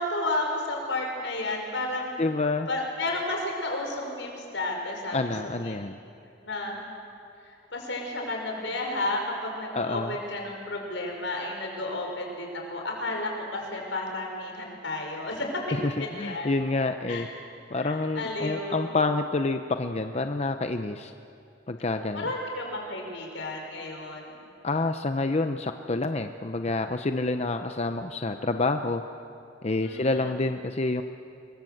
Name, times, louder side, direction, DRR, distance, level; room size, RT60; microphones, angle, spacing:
voice 1, 0.0-2.1 2.7-5.2 5.6-5.8 6.4-6.8 7.7-15.5 15.8-16.5 17.1-17.3 17.8-18.8 22.1-24.4 29.8-30.2, left 2 dB, 80° left, 1 dB, 5.5 m, -32 dB
voice 2, 2.2-2.7 5.1-6.0 9.7-10.1 15.7-17.3 17.7-21.1 21.7-22.3 24.6-29.0 29.6-31.0, left 3 dB, 35° left, 7 dB, 0.7 m, -28 dB
26.0 x 22.5 x 7.9 m, 2.7 s
head